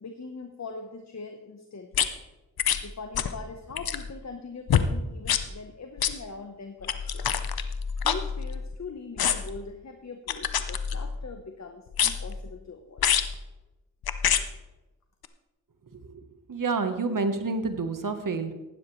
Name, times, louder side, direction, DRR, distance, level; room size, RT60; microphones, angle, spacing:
voice 1, 0.0-2.1 2.8-7.3 8.0-13.1, left 4 dB, 50° left, 5 dB, 1.1 m, -41 dB
sound 1, 1.9-2.1 2.6-2.8 3.1-3.4 3.7-4.1 4.7-4.9 5.2-5.4 6.0-6.1 6.8-8.7 9.2-9.6 10.3-11.2 11.9-12.4 13.0-13.3 14.0-14.4 15.2-15.3, left 8 dB, 80° left, 0.8 m, -26 dB
voice 2, 15.9-18.5, right 4 dB, 60° right, 8 dB, 1.3 m, -29 dB
15.5 x 11.5 x 3.2 m, 1.1 s
cardioid pair, 45°, 36 cm